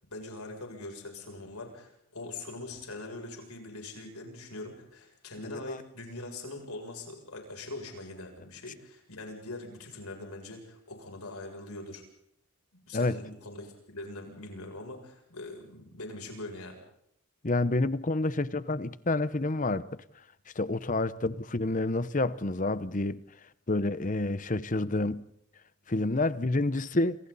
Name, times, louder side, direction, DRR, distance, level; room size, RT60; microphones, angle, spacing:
voice 1, 0.1-12.0 12.9-16.8, left 2 dB, 90° left, 7.4 m, -42 dB
voice 2, 5.4-5.8 12.9-13.1 17.4-19.9 20.6-23.2 23.7-25.3 25.9-27.2, left 2 dB, 35° left, 0.9 m, -28 dB
28.5 x 28.0 x 4.2 m
head